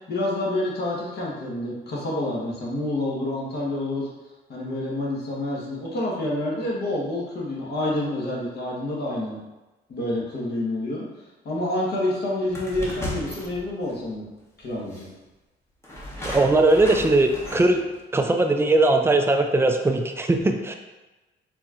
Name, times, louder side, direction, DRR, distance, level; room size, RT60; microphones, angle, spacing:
voice 1, 0.1-4.1 4.5-9.4 9.9-11.0 11.4-14.3 14.6-15.1, left 1 dB, 55° left, -4 dB, 1.2 m, -28 dB
sound 1, 12.5-14.0 14.9-15.0 15.8-18.0, left 1 dB, 15° left, 0.9 m, -35 dB
voice 2, 16.2-17.8 18.1-20.7, right 2 dB, 10° right, 4 dB, 0.4 m, -20 dB
4.1 x 2.9 x 2.4 m, 1.1 s
cardioid pair, 90°, 20 cm